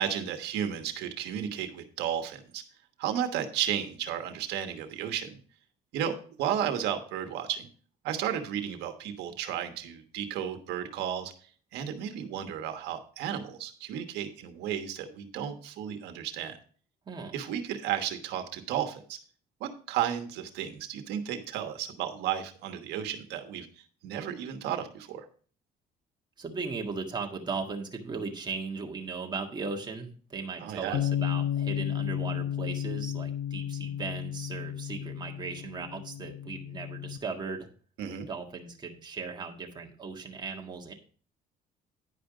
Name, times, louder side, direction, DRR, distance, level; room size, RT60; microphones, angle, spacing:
voice 1, 0.0-2.6 3.0-5.4 5.9-7.7 8.0-11.3 11.7-16.6 17.3-19.2 19.6-23.7 24.0-25.2 30.6-31.0 38.0-38.3, right 9 dB, 85° right, 7 dB, 1.3 m, -33 dB
voice 2, 26.4-37.7 38.3-40.9, right 4 dB, 25° right, 2 dB, 1.7 m, -37 dB
Bass guitar, 30.9-37.2, left 10 dB, 60° left, 0.7 m, -33 dB
10.0 x 5.1 x 4.9 m, 0.42 s
cardioid pair, 110°, 17 cm